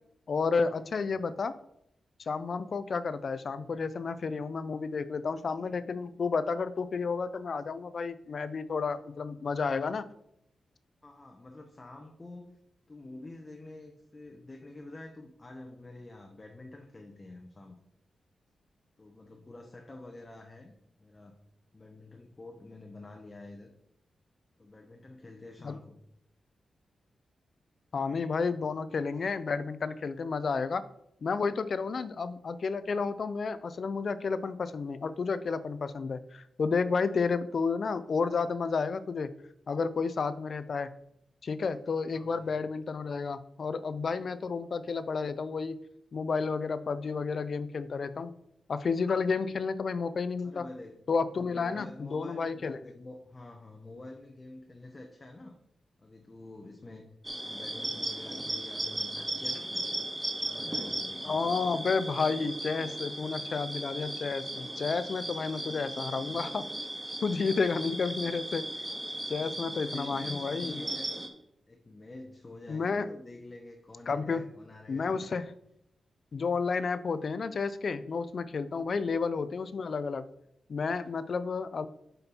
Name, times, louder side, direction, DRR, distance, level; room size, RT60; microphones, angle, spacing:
voice 1, 0.3-1.6 2.3-10.1 25.6-25.7 27.9-30.8 31.2-39.3 39.7-40.9 41.4-45.8 46.1-48.3 48.7-50.6 51.1-52.8 61.2-66.7 67.2-68.7 69.3-70.8 72.7-73.1 74.1-74.5 74.9-75.5 76.3-80.2 80.7-81.9, left 4 dB, 50° left, 14 dB, 0.5 m, -31 dB
voice 2, 11.0-12.6 12.9-17.8 19.0-21.4 21.7-23.7 24.6-26.0 42.1-42.6 50.4-51.0 51.3-55.6 56.0-57.1 57.4-59.9 60.3-61.4 69.1-71.1 71.7-75.3 78.8-79.0, left 2 dB, 25° left, 3 dB, 0.8 m, -48 dB
sound 1, 57.2-71.3, right 1 dB, 15° right, 1.0 m, -37 dB
8.0 x 5.3 x 4.4 m, 0.76 s
wide cardioid pair, 130°, 0 cm